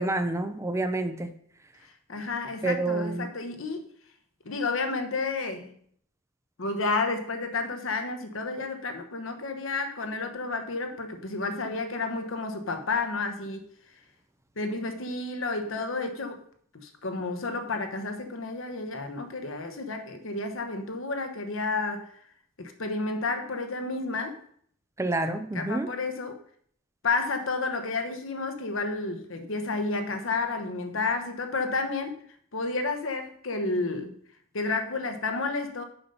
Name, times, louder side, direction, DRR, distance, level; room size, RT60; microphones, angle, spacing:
voice 1, 0.0-1.3 2.6-3.3 25.0-25.9, right 2 dB, 15° right, 9 dB, 0.5 m, -28 dB
voice 2, 2.1-3.9 4.4-5.7 6.6-13.7 14.6-16.4 16.7-22.1 22.6-24.4 25.5-26.4 27.0-32.2 32.5-34.2 34.5-35.8, left 3 dB, 70° left, 7 dB, 1.1 m, -31 dB
6.9 x 5.5 x 5.6 m, 0.62 s
head